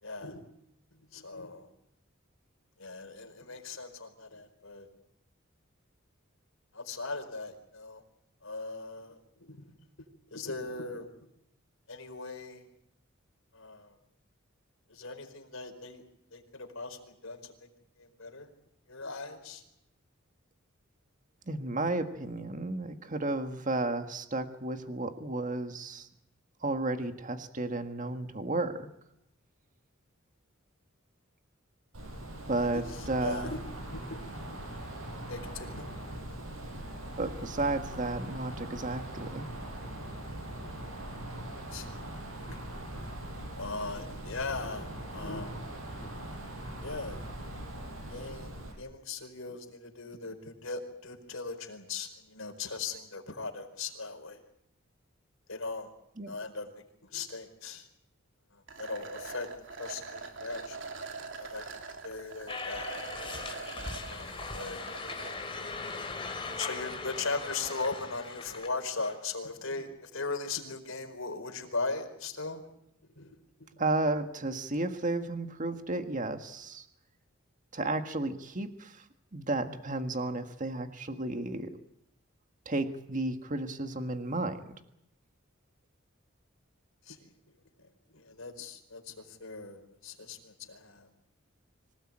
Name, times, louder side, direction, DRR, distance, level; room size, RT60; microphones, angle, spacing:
voice 1, 0.0-0.4 1.1-1.7 2.8-4.9 6.7-8.0 8.4-9.7 10.3-11.1 11.9-12.6 13.5-13.9 14.9-16.0 16.3-17.7 18.0-18.5 18.9-19.6 32.7-34.2 35.3-36.1 41.7-41.9 42.4-42.6 42.9-43.0 43.6-45.6 46.0-46.1 46.8-47.2 48.1-48.5 48.8-54.4 55.5-55.9 56.3-56.8 57.1-57.9 58.5-59.5 59.8-60.8 61.4-61.6 62.0-63.0 64.0-64.8 65.9-66.0 66.6-72.6 73.2-73.8 87.1-87.2 87.8-87.9 88.1-91.1, left 3 dB, 75° left, 4 dB, 4.7 m, -39 dB
voice 2, 21.5-26.1 26.6-28.9 32.5-33.5 37.2-39.4 56.2-56.3 73.8-76.8 77.7-79.0 79.3-81.7 82.6-84.7, right 2 dB, 40° right, 7 dB, 1.7 m, -33 dB
Wind, 31.9-48.7, right 1 dB, 85° right, 6.8 m, -41 dB
sound 1, 58.7-65.3, right 4 dB, 65° right, 3.2 m, -43 dB
sound 2, 62.5-69.1, left 3 dB, 25° left, 3.2 m, -39 dB
26.0 x 17.5 x 8.9 m, 0.79 s
head